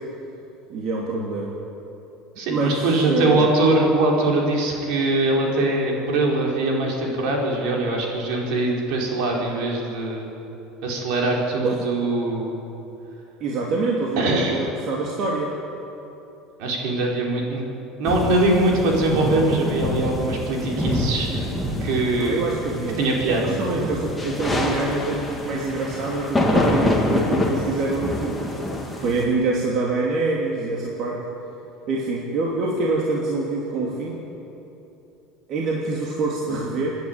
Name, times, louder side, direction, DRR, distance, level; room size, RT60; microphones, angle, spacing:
voice 1, 0.7-1.6 2.5-3.5 11.7-11.8 13.4-15.5 22.2-28.4 28.9-31.2 31.9-34.2 35.5-37.0, right 3 dB, 45° right, -3 dB, 2.8 m, -25 dB
voice 2, 2.4-10.3 10.8-12.5 14.2-14.6 16.6-17.6 18.0-21.5 21.8-22.4 23.0-23.5, right 2 dB, 65° right, -1 dB, 4.9 m, -22 dB
sound 1, 18.1-29.2, left 1 dB, 5° left, 2.4 m, -26 dB
27.0 x 10.5 x 9.1 m, 2.9 s
cardioid pair, 145°, 0 cm